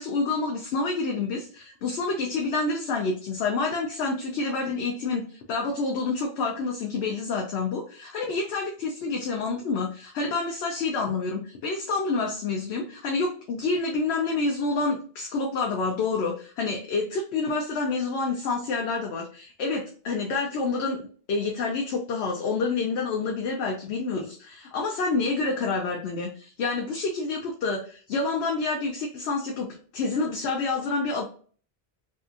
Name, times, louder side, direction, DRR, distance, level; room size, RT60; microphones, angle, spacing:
voice 1, 0.0-29.7 29.9-31.2, left 3 dB, 85° left, 1 dB, 0.8 m, -28 dB
2.7 x 2.4 x 2.4 m, 0.43 s
omnidirectional pair, 1.1 m